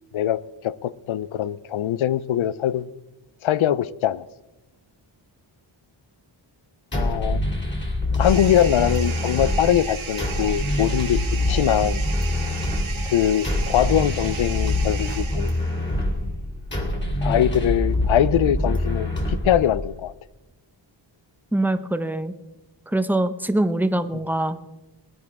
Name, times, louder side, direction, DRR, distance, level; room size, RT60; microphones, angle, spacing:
voice 1, 0.1-2.9 3.4-4.2 6.9-7.4 8.2-12.0 13.0-15.5 17.2-20.1, left 11 dB, 85° left, 0.6 m, -22 dB
sound 1, 6.9-19.9, left 1 dB, 25° left, 2.3 m, -25 dB
sound 2, 8.2-15.9, right 6 dB, 80° right, 2.0 m, -35 dB
voice 2, 21.5-22.3 22.9-24.7, right 1 dB, 5° right, 0.5 m, -23 dB
20.0 x 11.0 x 3.6 m
wide cardioid pair, 165°, 47 cm